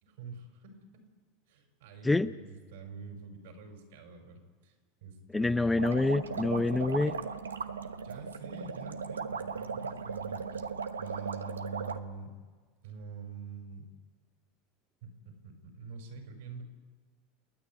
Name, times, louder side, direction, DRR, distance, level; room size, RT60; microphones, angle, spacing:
voice 1, 0.0-1.0 1.5-4.7 5.0-5.7 8.0-10.7 11.0-12.3 12.8-13.9 15.0-16.6, right 5 dB, 70° right, 4 dB, 5.3 m, -46 dB
voice 2, 5.3-7.2, left 2 dB, 10° left, 12 dB, 0.7 m, -27 dB
sound 1, 5.8-12.0, right 5 dB, 85° right, 1.0 m, -37 dB
29.0 x 9.7 x 10.0 m, 1.5 s
hypercardioid pair, 85°, 0 cm